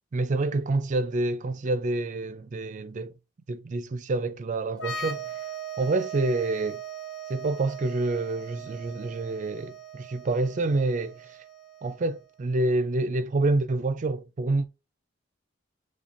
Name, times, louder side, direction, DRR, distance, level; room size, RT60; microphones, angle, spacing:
voice 1, 0.1-3.1 3.5-5.2 5.8-6.8 7.3-11.4 11.8-14.7, right 2 dB, 40° right, 0.4 m, -27 dB
sound 1, 4.7-12.2, right 5 dB, 75° left, 1.2 m, -39 dB
5.8 x 3.3 x 2.5 m
head